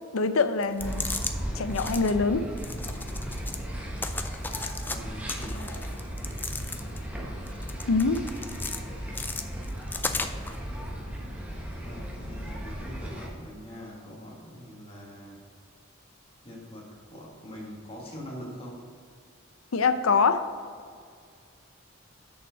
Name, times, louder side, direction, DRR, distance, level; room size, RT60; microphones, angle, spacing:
voice 1, 0.1-1.1 1.6-2.4 7.9-8.2 19.7-20.4, left 4 dB, 85° left, 10 dB, 0.6 m, -24 dB
sound 1, 0.6-1.3 1.7-2.1 2.6-3.6 4.0-5.0 5.3-7.1 7.5-8.8 9.1-10.6, left 3 dB, 10° left, 0.4 m, -35 dB
sound 2, 0.8-13.3, equal, 5° right, 1.2 m, -36 dB
voice 2, 4.8-5.9 11.8-15.4 16.4-18.9, equal, 30° left, -3 dB, 1.9 m, -43 dB
6.8 x 5.5 x 6.5 m, 2.1 s
head